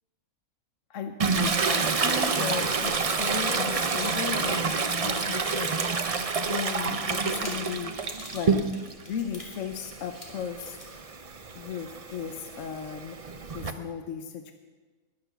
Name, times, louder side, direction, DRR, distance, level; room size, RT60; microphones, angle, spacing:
voice 1, 0.9-5.7 6.5-7.9 8.3-8.6 9.1-10.8 11.5-13.2 13.5-14.5, left 7 dB, 60° left, 7 dB, 1.1 m, -36 dB
Toilet flush, 1.2-9.0 9.4-13.7, right 4 dB, 40° right, 0.5 m, -28 dB
sound 1, 4.9-13.3, left 1 dB, 25° left, 2.6 m, -49 dB
20.5 x 7.0 x 6.8 m, 1.3 s
omnidirectional pair, 1.7 m